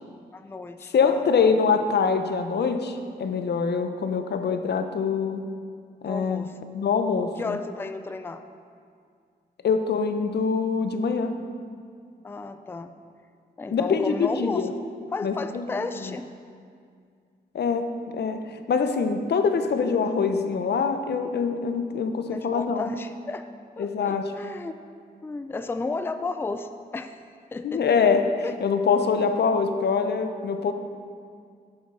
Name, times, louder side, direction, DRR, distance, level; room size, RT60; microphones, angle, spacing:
voice 1, 0.3-1.5 6.0-6.5 7.4-8.4 12.2-12.9 13.6-14.6 15.1-16.3 22.3-23.4 23.8-24.7 25.2-27.2 27.5-28.0 28.4-28.5, left 3 dB, 15° left, 9 dB, 0.3 m, -33 dB
voice 2, 0.9-5.5 6.0-6.5 6.7-7.6 9.6-11.4 13.7-14.7 15.2-15.7 16.0-16.1 17.5-22.9 23.8-24.3 27.6-30.7, left 5 dB, 75° left, 8 dB, 0.6 m, -24 dB
10.0 x 6.2 x 3.7 m, 2.2 s
wide cardioid pair, 85°, 17 cm